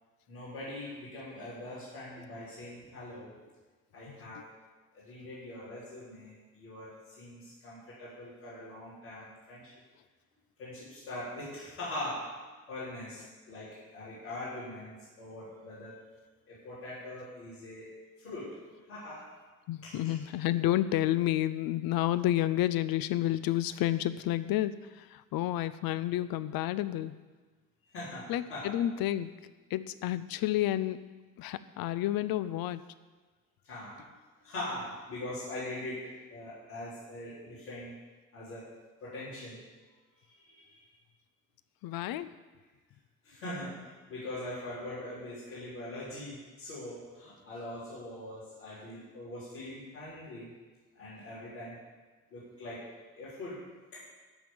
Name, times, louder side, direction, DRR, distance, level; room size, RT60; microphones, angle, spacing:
voice 1, 0.3-3.3 3.9-4.5 4.9-9.7 10.6-12.4 12.7-16.0 16.5-18.6 18.9-19.3 19.8-20.2 27.9-28.8 33.6-34.1 34.4-37.9 38.3-38.7 39.0-39.6 40.4-40.8 43.2-50.5 51.0-51.8 52.3-54.0, left 1 dB, 85° left, -14 dB, 4.5 m, -42 dB
voice 2, 19.7-27.1 28.3-29.3 29.7-31.0 31.4-32.8 41.8-42.3, left 13 dB, 55° left, 14 dB, 0.7 m, -30 dB
13.5 x 6.0 x 7.2 m, 1.3 s
hypercardioid pair, 50°, 42 cm